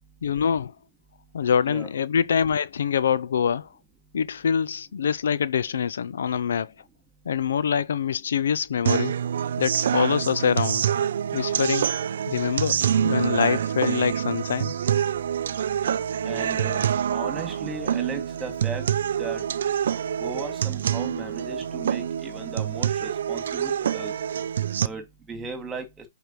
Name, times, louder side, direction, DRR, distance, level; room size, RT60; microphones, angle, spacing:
voice 1, 0.2-0.7 1.3-3.7 4.1-6.7 7.3-9.1 9.6-10.8 11.3-11.9 12.3-14.7, left 7 dB, 70° left, 0.4 m, -25 dB
sound 1, 8.9-24.9, right 9 dB, 65° right, 0.5 m, -26 dB
voice 2, 16.2-18.9 19.2-19.5 20.2-24.1 24.8-25.9, right 4 dB, 10° right, 2.2 m, -36 dB
8.1 x 4.7 x 3.1 m
hypercardioid pair, 145°, 0 cm